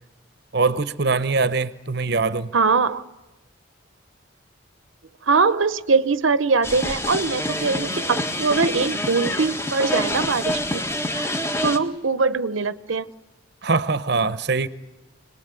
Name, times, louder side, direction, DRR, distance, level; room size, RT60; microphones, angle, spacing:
voice 1, 0.5-2.5 13.6-14.7, right 4 dB, 55° right, 0.9 m, -22 dB
voice 2, 2.5-3.0 5.3-10.8 11.6-13.1, right 4 dB, 85° right, 0.8 m, -22 dB
sound 1, 6.6-11.8, left 1 dB, 15° left, 1.7 m, -27 dB
26.5 x 20.0 x 9.1 m
head